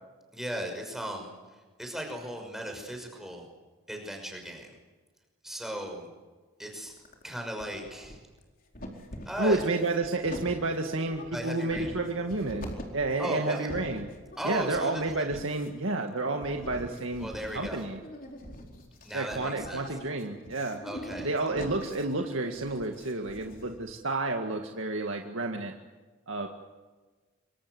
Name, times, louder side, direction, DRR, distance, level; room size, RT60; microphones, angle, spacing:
voice 1, 0.3-3.5 3.9-4.7 5.4-6.1 6.6-6.9 7.2-8.2 9.2-9.6 11.3-12.2 13.2-13.7 14.4-15.2 17.2-17.8 19.0-19.8 20.8-21.3, equal, ahead, 2 dB, 6.0 m, -37 dB
sound 1, 6.9-7.3 7.6-8.4 8.7-23.9, equal, 40° left, 4.4 m, -44 dB
voice 2, 9.4-14.1 14.4-17.3 17.5-18.0 19.1-20.8 21.2-25.7 26.3-26.5, right 2 dB, 75° right, 3 dB, 2.0 m, -30 dB
26.0 x 25.0 x 8.0 m, 1.3 s
head